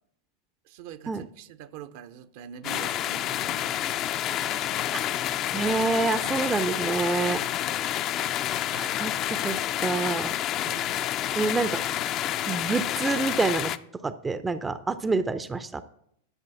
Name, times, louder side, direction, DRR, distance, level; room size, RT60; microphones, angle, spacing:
voice 1, 0.6-4.2 7.6-7.8 10.6-11.4, right 9 dB, 50° right, 0.7 m, -45 dB
sound 1, 2.6-13.8, left 12 dB, 35° left, 0.5 m, -29 dB
voice 2, 5.5-7.4 8.7-10.3 11.4-11.8 12.5-13.7 14.0-15.8, right 3 dB, 15° right, 0.6 m, -27 dB
11.5 x 6.8 x 6.9 m
figure-of-eight pair, 90°, 0 cm